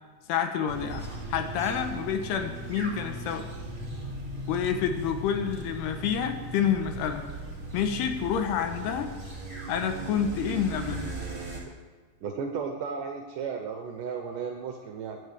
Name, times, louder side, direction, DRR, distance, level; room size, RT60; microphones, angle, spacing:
voice 1, 0.3-1.0 1.3-3.5 4.5-7.2 7.7-9.1 9.7-11.0, left 8 dB, 85° left, 6 dB, 3.0 m, -28 dB
sound 1, 0.7-11.6, right 1 dB, 25° right, 2.6 m, -38 dB
voice 2, 12.2-15.2, right 6 dB, 75° right, 4 dB, 1.9 m, -34 dB
17.0 x 9.5 x 3.4 m, 1.5 s
omnidirectional pair, 4.7 m